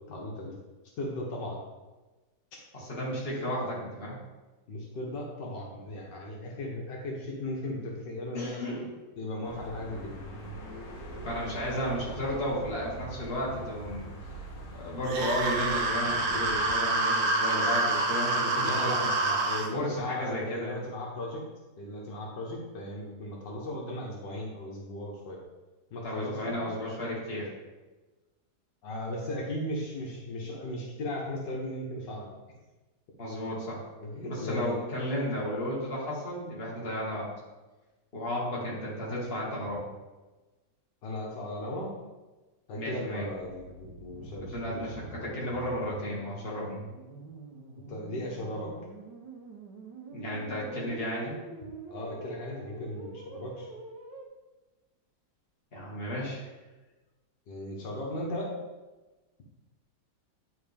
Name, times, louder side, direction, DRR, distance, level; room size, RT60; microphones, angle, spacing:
voice 1, 0.1-0.6 1.0-1.6 4.7-8.6 9.2-10.2 18.6-21.4 21.8-25.4 25.9-26.6 28.8-32.3 34.0-34.8 41.0-41.9 42.7-44.8 47.9-48.7 51.9-53.7 57.5-58.5, left 1 dB, 80° left, -2 dB, 1.8 m, -37 dB
voice 2, 2.7-4.2 8.3-9.0 11.2-14.1 14.7-18.9 19.7-20.8 26.0-27.5 33.2-33.8 34.3-37.3 38.1-39.9 42.7-43.3 44.4-46.8 50.1-51.4 55.7-56.5, equal, 35° left, -5 dB, 2.0 m, -33 dB
sound 1, 9.4-16.8, right 1 dB, 50° left, 1.3 m, -42 dB
sound 2, 15.1-19.7, right 2 dB, 65° right, 1.2 m, -27 dB
sound 3, 43.4-54.3, right 3 dB, 80° right, 1.6 m, -46 dB
9.5 x 4.3 x 3.4 m, 1.2 s
omnidirectional pair, 1.9 m